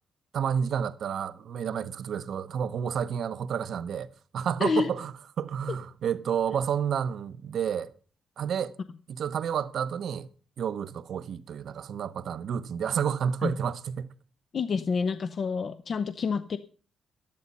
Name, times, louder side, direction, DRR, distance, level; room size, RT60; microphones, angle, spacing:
voice 1, 0.3-4.1 4.3-7.9 8.4-8.7 9.1-10.3 10.6-14.1, right 8 dB, 70° right, 0.8 m, -30 dB
voice 2, 4.6-4.9 13.4-13.5 14.5-16.6, left 5 dB, 45° left, 0.6 m, -28 dB
12.0 x 10.5 x 5.4 m
cardioid pair, 115°, 0 cm